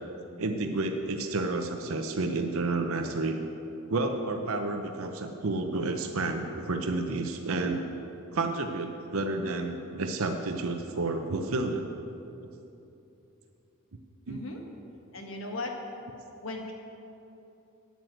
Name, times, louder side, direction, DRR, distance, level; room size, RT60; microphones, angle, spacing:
voice 1, 0.4-3.4 3.9-7.8 8.3-11.9 14.3-14.4, right 2 dB, 70° right, 5 dB, 0.7 m, -30 dB
voice 2, 14.3-14.6 15.1-15.9 16.4-16.7, left 2 dB, 60° left, 2 dB, 1.6 m, -37 dB
9.4 x 9.2 x 7.8 m, 2.9 s
head